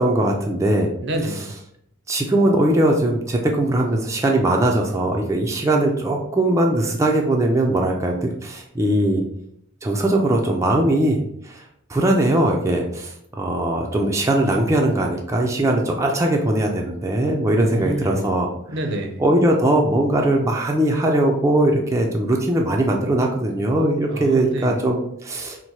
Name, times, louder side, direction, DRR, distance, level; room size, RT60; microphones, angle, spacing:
voice 1, 0.0-0.9 2.1-9.2 9.8-11.6 11.9-18.5 19.2-25.6, right 1 dB, 15° right, 0 dB, 0.4 m, -20 dB
voice 2, 1.0-1.5 17.5-18.4 18.7-19.2 24.1-24.8, right 1 dB, 60° right, 5 dB, 0.6 m, -28 dB
4.1 x 2.1 x 4.5 m, 0.71 s
head